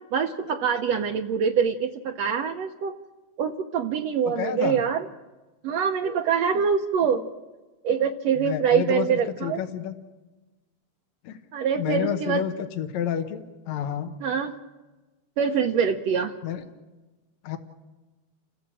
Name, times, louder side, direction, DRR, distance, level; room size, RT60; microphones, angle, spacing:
voice 1, 0.1-2.9 3.4-5.1 5.6-7.2 7.8-9.6 11.5-12.4 14.2-14.6 15.4-16.3, right 7 dB, 70° right, 4 dB, 1.8 m, -24 dB
voice 2, 4.4-4.8 8.4-9.1 9.4-9.9 11.3-11.4 11.8-14.1 16.4-16.6 17.4-17.6, left 9 dB, 65° left, 7 dB, 2.4 m, -29 dB
29.5 x 15.5 x 7.6 m, 1.2 s
omnidirectional pair, 3.5 m